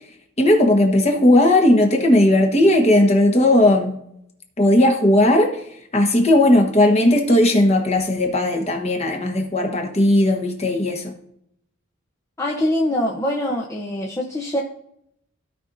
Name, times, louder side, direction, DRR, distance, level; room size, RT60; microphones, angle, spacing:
voice 1, 0.4-3.9 4.6-5.6 5.9-11.1, left 1 dB, 30° left, 1.3 m, -16 dB
voice 2, 12.4-14.6, left 1 dB, 15° left, 0.8 m, -23 dB
16.0 x 5.3 x 2.7 m
head